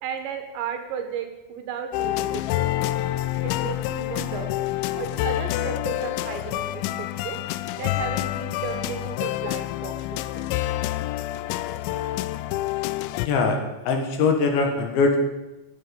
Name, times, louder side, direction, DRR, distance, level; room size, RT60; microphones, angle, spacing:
voice 1, 0.0-2.8 3.4-4.5 4.9-7.4 7.8-10.5, right 8 dB, 75° right, 6 dB, 3.0 m, -34 dB
sound 1, 1.9-13.3, left 15 dB, 90° left, 2.6 m, -27 dB
voice 2, 13.2-13.6 13.9-15.2, left 4 dB, 70° left, 4 dB, 3.6 m, -21 dB
17.5 x 9.9 x 5.2 m, 1.0 s
omnidirectional pair, 5.8 m